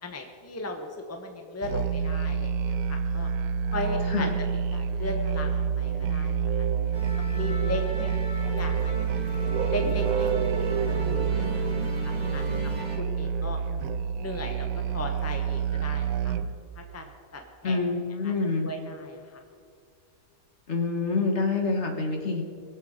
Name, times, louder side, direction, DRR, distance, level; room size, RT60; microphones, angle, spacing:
voice 1, 0.0-3.3 3.7-6.3 7.2-8.2 8.5-9.0 9.7-10.6 10.9-11.0 11.3-11.7 12.0-13.6 14.2-16.4 16.7-17.8 18.2-18.3 18.6-19.4, left 2 dB, 10° left, 4 dB, 0.9 m, -37 dB
Musical instrument, 1.6-16.6, right 6 dB, 85° right, 1.1 m, -28 dB
Musical instrument 2, 6.9-13.0, right 2 dB, 30° right, 1.5 m, -38 dB
voice 2, 17.6-18.7 20.7-22.4, left 3 dB, 55° left, 3 dB, 1.6 m, -26 dB
22.5 x 7.6 x 5.0 m, 2.2 s
omnidirectional pair, 1.5 m